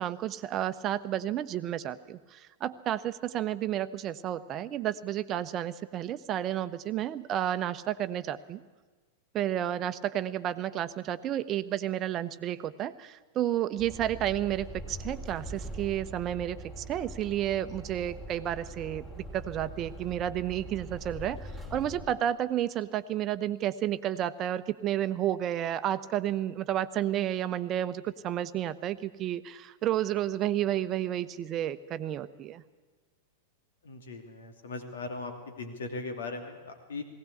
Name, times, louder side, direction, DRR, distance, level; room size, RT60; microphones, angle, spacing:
voice 1, 0.0-8.6 9.3-32.6, right 11 dB, 35° right, 13 dB, 0.9 m, -31 dB
sound 1, 13.8-22.1, right 1 dB, 15° left, 3.9 m, -42 dB
voice 2, 33.8-35.3 35.6-37.0, left 3 dB, 70° left, 5 dB, 2.7 m, -38 dB
20.0 x 17.0 x 8.4 m, 1.3 s
figure-of-eight pair, 95°, 0 cm